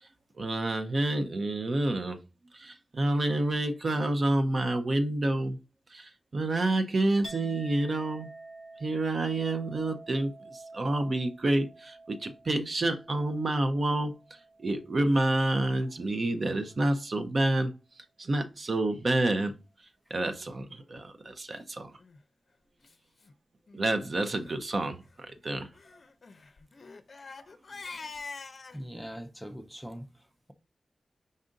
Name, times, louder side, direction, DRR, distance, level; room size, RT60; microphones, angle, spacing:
voice 1, 0.4-2.2 2.6-5.6 5.9-8.3 8.8-14.1 14.6-17.7 18.2-19.5 20.1-21.9 23.7-25.0 25.3-25.7, right 2 dB, 50° right, 0.6 m, -28 dB
Chink clink, 7.2-14.9 15.3-15.9, right 2 dB, 75° right, 1.6 m, -49 dB
Crying sobbing, 21.9-22.2 22.8-22.9 23.2-23.3 23.7-23.9 24.3-24.6 25.7-28.8, left 4 dB, 55° left, 0.5 m, -45 dB
voice 2, 28.7-30.5, equal, ahead, 0.5 m, -42 dB
5.3 x 2.5 x 3.8 m
wide cardioid pair, 105°, 0 cm